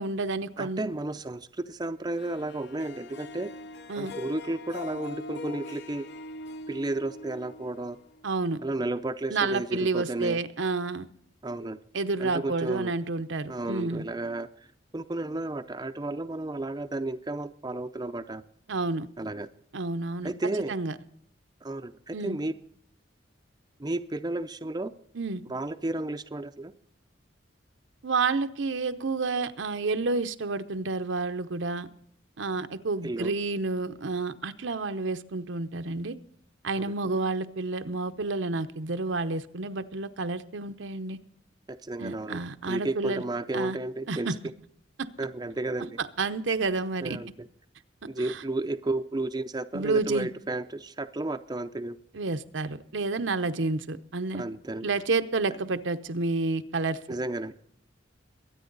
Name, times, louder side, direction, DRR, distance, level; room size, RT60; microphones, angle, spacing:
voice 1, 0.0-0.8 3.9-4.1 8.2-8.6 9.3-11.1 11.9-14.0 18.7-19.1 19.7-20.3 20.7-20.9 22.1-22.4 25.1-25.4 28.0-31.9 32.4-36.2 36.6-41.2 42.0-43.2 43.5-43.8 44.1-44.4 45.0-45.1 46.0-47.2 48.2-48.4 49.7-50.3 52.1-54.4 54.8-57.0, right 3 dB, 75° right, 10 dB, 0.8 m, -30 dB
voice 2, 0.6-3.5 4.0-6.1 6.7-8.0 8.6-10.4 11.4-11.8 12.2-12.9 13.5-14.5 14.9-18.4 19.2-19.5 20.2-20.7 21.6-22.5 23.8-24.9 25.5-26.7 33.0-33.3 36.8-36.9 41.7-42.4 42.7-44.3 45.2-46.0 47.0-47.5 48.0-52.0 54.3-54.9 57.1-57.5, right 2 dB, 20° right, 8 dB, 0.5 m, -32 dB
Harp, 2.2-8.4, left 2 dB, 60° left, 0.8 m, -42 dB
23.0 x 9.2 x 4.0 m, 0.67 s
head